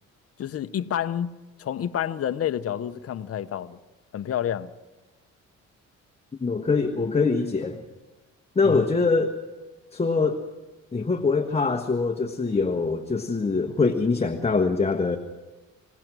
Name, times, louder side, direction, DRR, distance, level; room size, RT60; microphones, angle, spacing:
voice 1, 0.4-1.3 1.6-3.8 4.1-4.7 8.6-8.9, left 10 dB, 50° left, 0.9 m, -29 dB
voice 2, 6.4-7.8 8.5-9.3 9.9-10.4 10.9-15.2, left 4 dB, 20° left, 1.3 m, -23 dB
26.5 x 17.0 x 6.2 m
cardioid pair, 90°, 30 cm